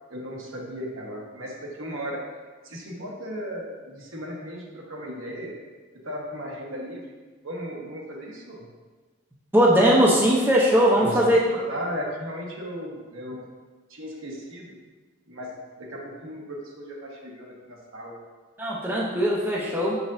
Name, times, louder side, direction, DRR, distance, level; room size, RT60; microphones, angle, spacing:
voice 1, 0.1-2.3 2.6-5.6 6.0-7.1 7.4-8.6 10.8-13.5 13.9-14.8 15.3-18.2, equal, 70° right, -2 dB, 1.2 m, -36 dB
voice 2, 9.5-11.4 18.6-20.0, equal, 10° right, -4 dB, 0.6 m, -20 dB
6.5 x 6.1 x 2.6 m, 1.4 s
head